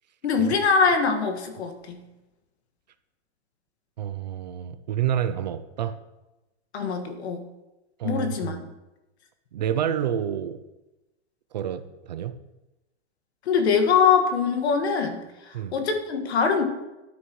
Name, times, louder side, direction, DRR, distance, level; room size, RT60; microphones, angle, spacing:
voice 1, 0.2-2.0 6.7-7.5 8.0-8.6 13.4-16.6, left 5 dB, 65° left, 6 dB, 1.8 m, -23 dB
voice 2, 4.0-6.0 8.0-8.6 9.5-10.6 11.5-12.4 15.5-15.8, right 9 dB, 40° right, 11 dB, 0.4 m, -28 dB
12.5 x 9.8 x 3.1 m, 1.0 s
hypercardioid pair, 165°, 35 cm